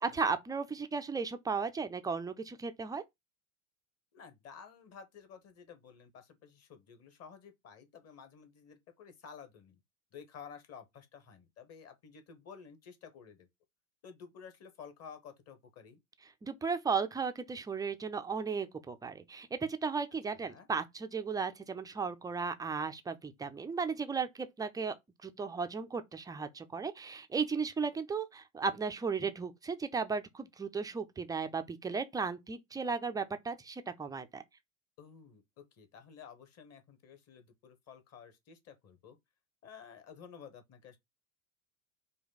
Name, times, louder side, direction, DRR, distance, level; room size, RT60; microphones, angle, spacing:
voice 1, 0.0-3.0 16.4-25.0 25.2-34.4, right 5 dB, 10° right, 0.4 m, -35 dB
voice 2, 4.1-9.8 10.1-13.5 14.0-16.0 20.3-20.7 35.0-39.2 39.6-41.0, left 6 dB, 35° left, 1.4 m, -52 dB
5.3 x 2.3 x 4.0 m
hypercardioid pair, 85°, 42 cm